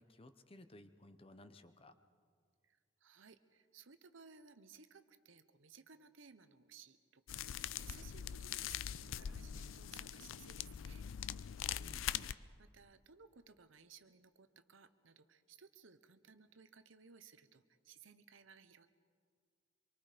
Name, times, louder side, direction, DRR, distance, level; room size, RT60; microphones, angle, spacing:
voice 1, 0.0-1.9 11.8-12.3, left 1 dB, 30° left, 10 dB, 0.8 m, -58 dB
voice 2, 2.6-11.0 12.6-18.9, right 6 dB, 80° right, 11 dB, 1.0 m, -61 dB
sound 1, 7.3-12.3, left 9 dB, 85° left, 0.4 m, -43 dB
25.5 x 23.5 x 5.1 m, 2.1 s
head